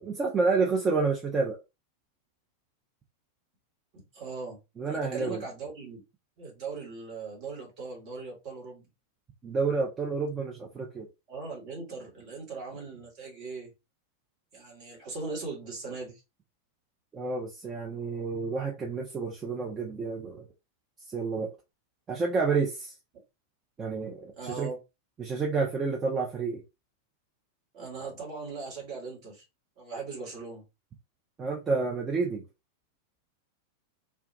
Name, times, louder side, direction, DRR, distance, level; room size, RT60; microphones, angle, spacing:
voice 1, 0.0-1.6 4.8-5.4 9.4-11.1 17.1-20.5 21.1-21.5 22.1-22.9 23.8-24.7 25.2-26.6 31.4-32.4, right 4 dB, 20° right, 0.5 m, -29 dB
voice 2, 3.9-6.0 6.4-8.9 11.3-13.7 14.5-16.2 24.4-24.8 27.7-29.4 29.8-30.6, right 4 dB, 40° right, 1.2 m, -39 dB
2.2 x 2.2 x 2.6 m
figure-of-eight pair, 90°, 0 cm